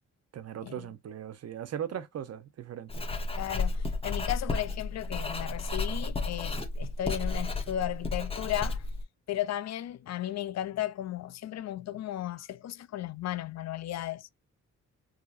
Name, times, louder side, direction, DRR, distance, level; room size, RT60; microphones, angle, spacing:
voice 1, 0.3-3.1, right 9 dB, 55° right, 0.7 m, -38 dB
Writing, 2.9-9.0, left 3 dB, 20° left, 1.0 m, -32 dB
voice 2, 3.4-8.8 9.3-14.3, left 12 dB, 60° left, 0.5 m, -35 dB
4.8 x 2.8 x 2.4 m
cardioid pair, 95°, 30 cm